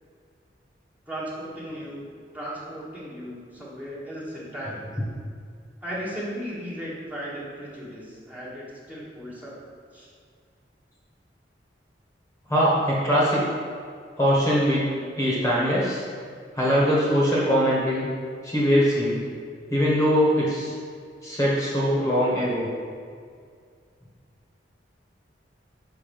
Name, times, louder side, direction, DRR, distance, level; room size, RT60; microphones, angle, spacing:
voice 1, 1.1-2.1 2.3-4.9 5.8-9.5 9.9-10.1, equal, 10° right, -7 dB, 1.3 m, -36 dB
voice 2, 12.5-13.4 14.2-14.8 15.2-16.0 16.6-18.1 18.4-19.2 19.7-20.7 21.2-22.7, equal, 15° left, -6 dB, 1.3 m, -22 dB
5.8 x 5.6 x 5.2 m, 2.1 s
head